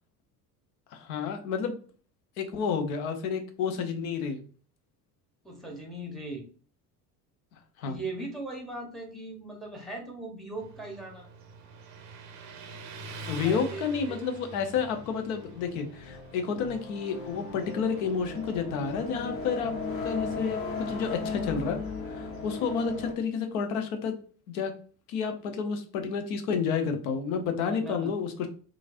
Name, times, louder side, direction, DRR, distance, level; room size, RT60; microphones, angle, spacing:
voice 1, 0.9-1.8 2.4-4.5 7.8-8.0 13.3-19.7 20.0-21.8 22.1-24.1 24.5-24.7 25.1-28.5, left 6 dB, 60° left, 6 dB, 0.7 m, -30 dB
voice 2, 5.4-6.5 7.8-11.3 13.4-13.8 14.1-14.2 27.7-28.3, right 2 dB, ahead, 1 dB, 0.8 m, -39 dB
Motorcycle, 10.6-23.2, right 3 dB, 35° right, 0.6 m, -47 dB
sound 1, 14.7-23.1, left 4 dB, 25° left, 0.9 m, -37 dB
3.1 x 2.5 x 2.4 m, 0.41 s
figure-of-eight pair, 65°, 50 cm